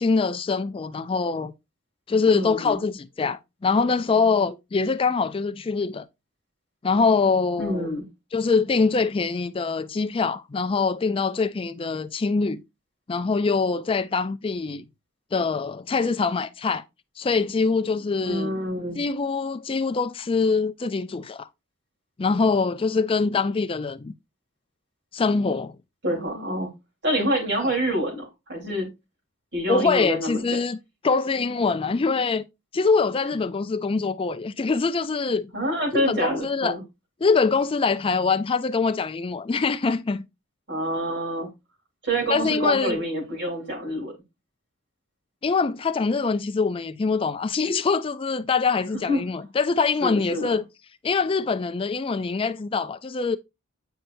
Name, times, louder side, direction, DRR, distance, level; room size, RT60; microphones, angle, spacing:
voice 1, 0.0-1.5 2.1-6.1 6.8-7.9 8.3-12.6 13.1-14.8 15.3-16.8 17.2-18.5 19.0-21.5 22.2-24.1 25.1-25.7 27.6-27.7 29.7-30.8 31.0-32.4 32.7-35.5 35.9-36.8 37.2-40.2 42.3-43.0 45.4-50.6 51.0-53.4, left 4 dB, 25° left, 0.4 m, -24 dB
voice 2, 2.3-2.8 7.6-8.1 18.2-19.0 26.0-26.7 27.0-28.9 29.5-30.4 35.5-36.8 40.7-41.5 42.0-44.1 49.1-49.2 50.0-50.6, equal, 55° right, 3.6 m, -27 dB
9.0 x 5.4 x 2.6 m
head